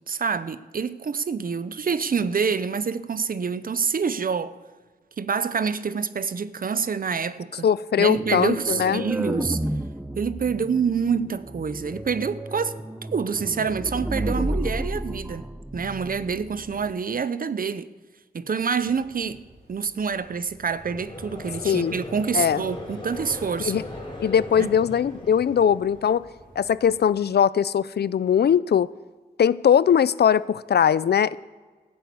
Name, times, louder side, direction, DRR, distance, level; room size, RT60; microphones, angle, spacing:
voice 1, 0.1-4.6 5.2-7.7 8.0-9.6 10.1-12.7 13.0-15.5 15.7-17.9 18.3-19.4 19.7-23.8 24.6-24.7, right 6 dB, 55° right, 0.7 m, -27 dB
voice 2, 7.6-9.1 21.6-21.9 22.3-22.6 23.7-23.8 24.2-26.2 26.6-28.9 29.4-31.4, left 8 dB, 70° left, 0.4 m, -20 dB
sound 1, 8.1-16.9, right 1 dB, 10° right, 0.6 m, -32 dB
sound 2, 18.7-27.1, right 1 dB, 85° right, 4.8 m, -49 dB
Conversation / Crowd, 20.8-26.1, left 1 dB, 25° left, 4.4 m, -38 dB
15.0 x 8.8 x 8.5 m
wide cardioid pair, 100°, 17 cm